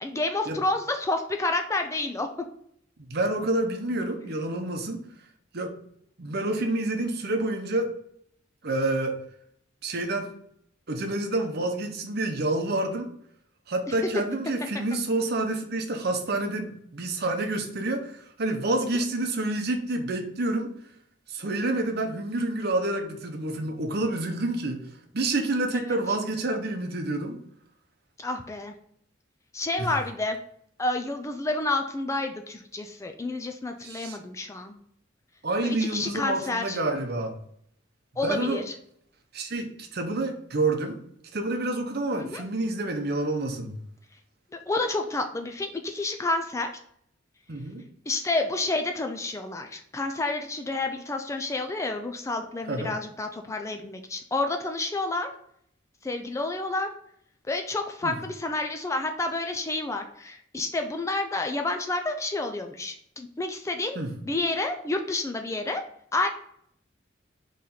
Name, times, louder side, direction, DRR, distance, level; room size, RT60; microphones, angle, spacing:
voice 1, 0.0-2.3 25.7-26.0 28.2-28.7 29.5-30.4 30.8-34.7 35.6-36.8 38.2-38.6 42.2-42.4 44.7-46.7 48.1-55.3 56.0-56.9 57.5-65.8 66.1-66.3, left 2 dB, 15° left, 5 dB, 0.3 m, -29 dB
voice 2, 3.1-5.0 5.5-5.7 6.2-7.9 8.6-9.2 9.8-10.3 10.9-13.1 13.7-20.7 21.3-24.8 25.1-27.4 29.8-29.9 33.8-34.2 35.4-37.4 38.2-38.6 39.3-41.0 41.3-43.8 47.5-47.8 52.7-53.0 58.0-58.2 63.9-64.1, right 2 dB, 55° right, 4 dB, 0.7 m, -28 dB
4.3 x 3.1 x 3.8 m, 0.68 s
head